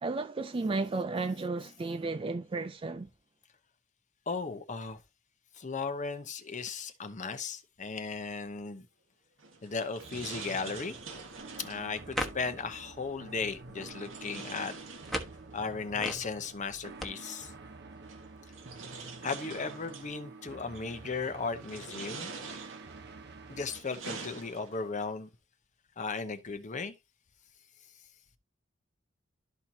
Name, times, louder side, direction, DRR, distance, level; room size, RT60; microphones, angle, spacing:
voice 1, 0.0-3.1, right 3 dB, 25° right, 0.4 m, -33 dB
voice 2, 4.3-5.0 5.5-8.9 9.6-11.0 11.6-14.7 15.5-17.5 19.2-22.3 23.5-25.3 26.0-26.9, left 4 dB, 40° left, 0.8 m, -36 dB
sound 1, 9.4-11.9 13.9-15.6 16.9-17.0 18.0-20.1 20.7-21.1 21.6-23.0 23.5-25.0, right 4 dB, 90° right, 1.6 m, -45 dB
sound 2, 10.0-23.8, right 3 dB, 60° right, 0.8 m, -49 dB
sound 3, 11.0-17.1, equal, ahead, 1.2 m, -42 dB
12.5 x 4.5 x 2.7 m
head